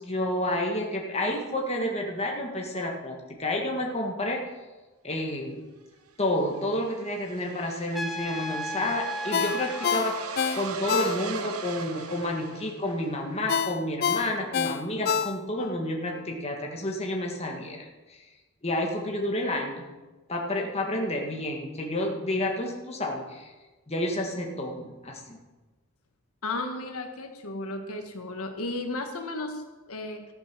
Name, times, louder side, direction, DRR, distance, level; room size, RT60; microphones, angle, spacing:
voice 1, 0.0-4.4 5.0-5.6 6.2-18.2 18.6-19.8 20.3-23.5 23.9-25.4, left 1 dB, 30° left, 0 dB, 1.6 m, -30 dB
sound 1, 6.1-13.2, right 5 dB, 80° right, 1.0 m, -39 dB
Trumpet, 7.9-9.9, left 1 dB, ahead, 0.6 m, -34 dB
Ringtone, 9.3-11.6 11.9-12.1 13.5-15.7 16.1-16.2, left 7 dB, 45° left, 0.4 m, -27 dB
voice 2, 26.4-30.2, left 2 dB, 80° left, 5 dB, 1.5 m, -34 dB
14.0 x 9.1 x 6.1 m, 1.2 s
head